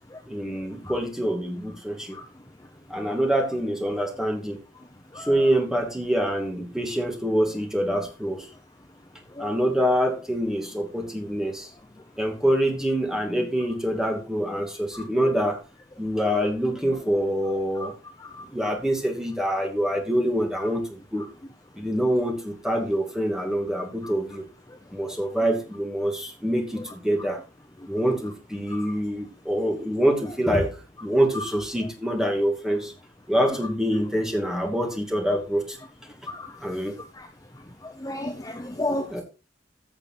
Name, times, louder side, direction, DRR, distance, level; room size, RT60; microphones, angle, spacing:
voice 1, 0.3-2.2 2.9-4.6 5.2-8.5 9.4-11.7 12.2-15.6 16.0-18.0 18.5-21.2 21.8-24.4 24.9-27.4 27.9-32.9 33.3-35.8 36.6-37.0 39.1-39.2, equal, 5° right, 2 dB, 2.4 m, -25 dB
voice 2, 37.8-39.2, left 1 dB, 20° left, 5 dB, 0.9 m, -32 dB
15.0 x 5.1 x 4.4 m, 0.30 s
head